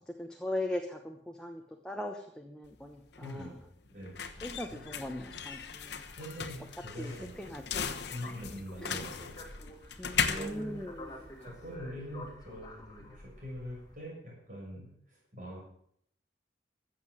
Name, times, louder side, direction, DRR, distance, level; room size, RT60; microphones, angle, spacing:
voice 1, 0.2-3.5 4.4-6.1 7.0-7.9 8.8-9.0 10.0-11.3, left 1 dB, 5° left, 2 dB, 1.1 m, -39 dB
sound 1, 2.6-11.7, left 6 dB, 70° left, 1.1 m, -38 dB
voice 2, 3.2-3.5 3.9-4.3 4.7-4.8 6.1-7.5 8.1-9.4 10.1-10.8 11.4-15.6, equal, 45° right, -4 dB, 6.4 m, -43 dB
sound 2, 4.1-14.0, left 1 dB, 20° left, 2.5 m, -51 dB
14.5 x 7.8 x 7.8 m, 0.68 s
head